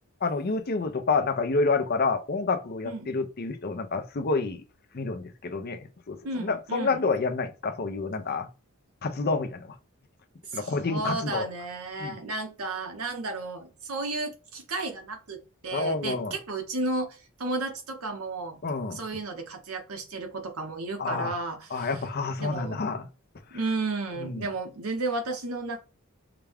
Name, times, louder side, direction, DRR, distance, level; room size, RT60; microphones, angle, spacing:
voice 1, 0.2-4.6 4.9-8.5 9.0-9.7 10.5-11.5 12.0-12.2 15.7-16.3 18.6-19.0 21.0-21.3 21.7-23.1 24.2-24.4, left 3 dB, 45° left, 0.6 m, -28 dB
voice 2, 6.2-7.0 10.5-18.6 18.9-22.0 22.4-22.8 23.5-25.8, right 3 dB, 80° right, 1.0 m, -33 dB
5.7 x 2.3 x 3.5 m
head